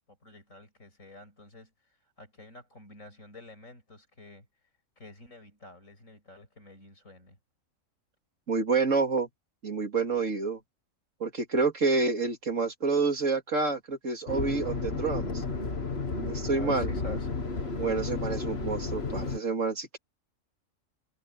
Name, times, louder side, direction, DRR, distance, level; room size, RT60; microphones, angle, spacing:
voice 1, 0.2-1.7 2.2-4.4 5.0-7.4 16.3-17.3, left 2 dB, 75° left, 7.1 m, -47 dB
voice 2, 8.5-9.3 9.6-10.6 11.2-15.4 16.2-16.9 17.8-20.0, right 4 dB, 70° right, 2.8 m, -28 dB
sound 1, 14.3-19.4, left 4 dB, 50° left, 2.1 m, -32 dB
omnidirectional pair, 1.4 m